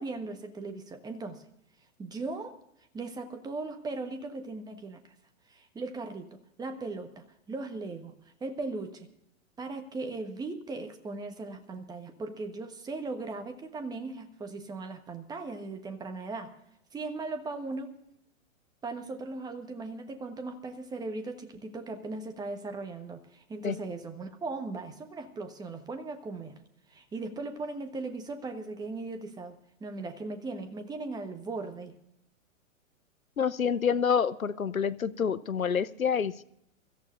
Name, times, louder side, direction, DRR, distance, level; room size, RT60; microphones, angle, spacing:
voice 1, 0.0-1.4 2.0-2.6 2.9-5.0 5.5-8.1 8.4-9.1 9.6-16.5 16.9-17.9 18.8-26.6 26.9-31.9, right 3 dB, 10° right, 6 dB, 1.2 m, -38 dB
voice 2, 33.4-36.4, left 7 dB, 90° left, 15 dB, 0.8 m, -27 dB
24.5 x 14.0 x 2.5 m, 0.75 s
figure-of-eight pair, 110°, 40 cm